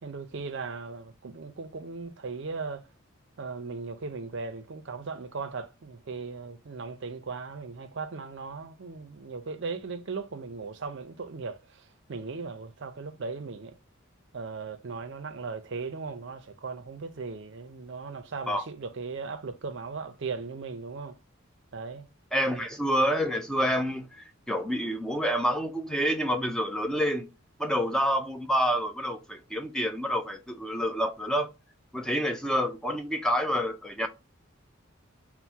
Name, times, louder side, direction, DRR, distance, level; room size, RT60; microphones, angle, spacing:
voice 1, 0.0-2.9 3.4-13.8 14.3-21.2 21.7-22.1 22.5-22.7, right 4 dB, 55° right, 0.5 m, -38 dB
voice 2, 22.3-27.3 27.6-31.5 31.9-34.1, equal, 5° left, 0.3 m, -28 dB
4.4 x 2.0 x 4.4 m
head